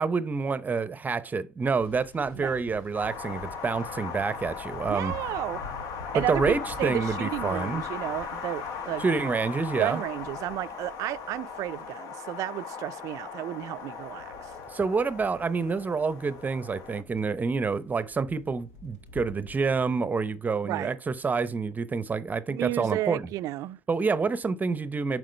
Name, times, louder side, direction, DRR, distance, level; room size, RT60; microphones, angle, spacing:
voice 1, 0.0-5.1 6.1-7.8 9.0-10.0 14.7-23.2 23.9-25.2, right 4 dB, 25° right, 0.6 m, -28 dB
sound 1, 1.8-11.9 13.7-19.8, left 2 dB, 80° left, 1.2 m, -47 dB
Wind, 2.9-17.0, left 6 dB, 65° left, 1.2 m, -38 dB
voice 2, 4.9-5.6 6.1-9.1 9.8-14.5 20.6-21.0 22.5-23.8, right 15 dB, 60° right, 0.4 m, -32 dB
7.5 x 5.0 x 3.2 m
hypercardioid pair, 70°, 6 cm